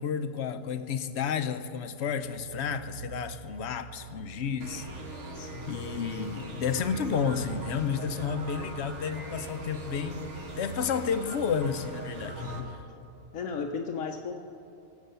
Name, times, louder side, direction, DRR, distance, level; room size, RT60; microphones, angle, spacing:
voice 1, 0.0-4.9 5.7-12.4, left 6 dB, 65° left, 11 dB, 0.9 m, -31 dB
sound 1, 1.9-12.7, right 7 dB, 80° right, 1.2 m, -47 dB
sound 2, 4.6-12.6, right 2 dB, 65° right, 1.8 m, -41 dB
voice 2, 5.3-5.7 12.4-12.7 13.3-14.3, left 5 dB, 85° left, 3 dB, 1.1 m, -35 dB
18.0 x 7.1 x 6.7 m, 2.9 s
omnidirectional pair, 1.3 m